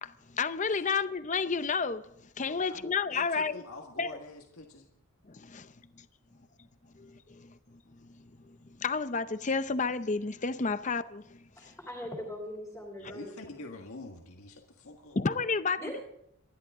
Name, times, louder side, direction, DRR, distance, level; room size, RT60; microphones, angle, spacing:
voice 1, 0.0-2.0 2.4-3.6 4.0-4.2 5.3-5.7 7.0-7.5 8.8-11.4 15.2-16.0, left 4 dB, 35° left, 0.6 m, -31 dB
voice 2, 2.4-4.9 13.0-15.2, left 2 dB, 75° left, 1.7 m, -47 dB
voice 3, 11.5-13.3 15.8-16.0, left 1 dB, 5° left, 3.2 m, -40 dB
27.0 x 11.5 x 3.7 m
head